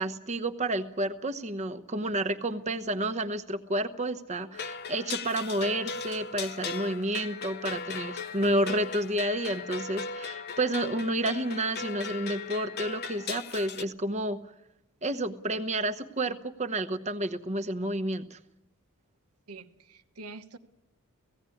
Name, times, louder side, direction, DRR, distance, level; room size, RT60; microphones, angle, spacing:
voice 1, 0.0-14.4 15.0-18.4, right 1 dB, 30° right, 8 dB, 1.0 m, -30 dB
sound 1, 4.5-13.8, left 5 dB, 45° left, 0.7 m, -38 dB
voice 2, 19.5-20.6, right 3 dB, 80° right, 9 dB, 1.2 m, -45 dB
17.0 x 16.5 x 9.9 m, 0.90 s
head